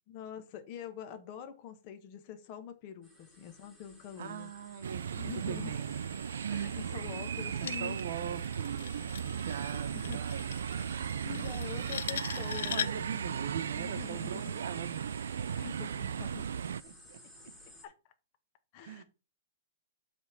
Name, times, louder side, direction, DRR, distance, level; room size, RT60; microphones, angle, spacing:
voice 1, 0.1-4.5 5.2-5.8 6.5-8.0 9.5-9.6 9.9-10.2 10.9-12.9 13.8-14.6 15.4-16.5 17.8-17.9 18.7-19.0, left 9 dB, 35° left, 1.2 m, -45 dB
sound 1, 3.0-17.9, left 1 dB, ahead, 2.0 m, -54 dB
voice 2, 4.2-6.0 7.6-10.6 11.2-11.5 12.6-15.1 16.8-17.2 18.8-19.0, right 8 dB, 60° right, 1.0 m, -41 dB
sound 2, 4.8-16.8, right 7 dB, 85° right, 0.3 m, -36 dB
sound 3, 7.4-13.2, left 8 dB, 75° left, 0.4 m, -41 dB
7.7 x 3.6 x 5.9 m
hypercardioid pair, 160°, 0 cm